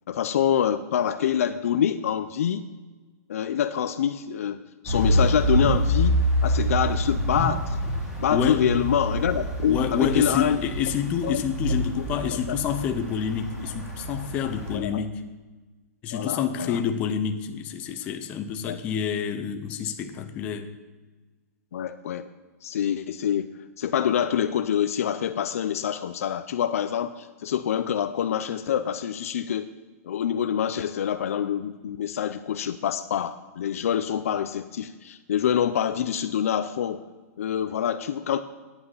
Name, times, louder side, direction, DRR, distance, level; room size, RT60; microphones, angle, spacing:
voice 1, 0.1-2.6 3.3-4.6 4.8-6.1 6.4-7.8 8.2-10.6 11.2-11.4 12.5-12.6 14.7-15.0 16.1-16.8 18.7-18.8 21.7-22.3 22.6-23.5 23.8-29.7 30.0-37.0 37.4-38.4, left 9 dB, 60° left, 9 dB, 0.5 m, -26 dB
sound 1, 4.9-14.8, equal, 10° right, 2.1 m, -27 dB
voice 2, 8.3-8.7 9.6-15.2 16.0-20.7, left 8 dB, 15° left, 7 dB, 0.5 m, -28 dB
9.4 x 8.8 x 5.6 m, 1.3 s
hypercardioid pair, 175°, 9 cm